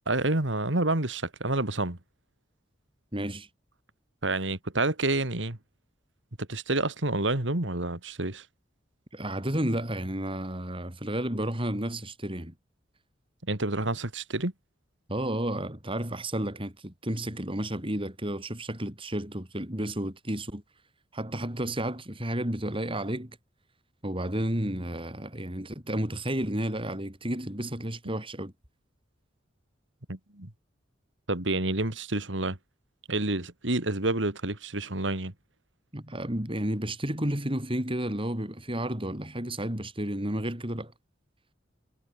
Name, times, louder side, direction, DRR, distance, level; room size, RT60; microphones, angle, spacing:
voice 1, 0.1-2.0 4.2-5.6 6.4-8.4 13.5-14.5 30.1-30.5 31.3-32.6 33.1-35.3, right 2 dB, 70° right, 2.7 m, -28 dB
voice 2, 3.1-3.5 9.1-12.5 15.1-20.6 21.1-23.3 24.0-28.5 35.9-40.9, right 1 dB, 30° right, 5.9 m, -32 dB
head